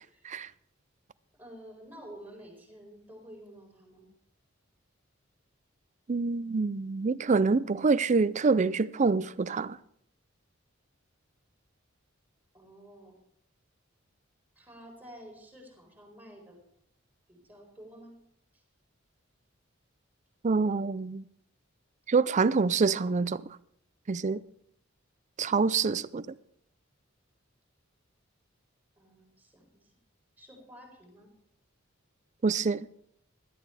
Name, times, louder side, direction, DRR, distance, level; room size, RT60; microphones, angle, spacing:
voice 1, 1.4-4.1 12.5-13.2 14.5-16.6 17.3-18.1 18.5-18.6 29.0-29.9 30.4-31.3, equal, 10° right, 4.6 m, -50 dB
voice 2, 6.1-9.8 20.4-21.2 22.1-23.4 24.1-24.4 25.4-26.3 32.4-32.9, right 4 dB, 35° right, 0.5 m, -26 dB
17.5 x 13.0 x 3.3 m
head